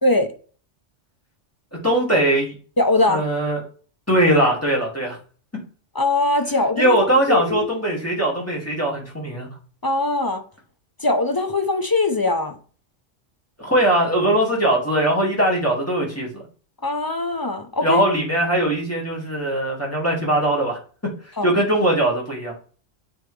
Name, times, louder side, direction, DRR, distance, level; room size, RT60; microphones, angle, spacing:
voice 1, 0.0-0.3 2.8-3.3 5.9-7.7 9.8-10.4 11.0-12.6 16.8-18.0 21.4-21.5, left 2 dB, 30° left, 0.4 m, -21 dB
voice 2, 1.8-2.5 3.1-3.6 4.1-5.2 6.8-9.5 13.6-16.3 17.8-20.8 21.4-22.5, right 1 dB, 10° left, 2.1 m, -20 dB
8.6 x 3.5 x 3.2 m
omnidirectional pair, 1.2 m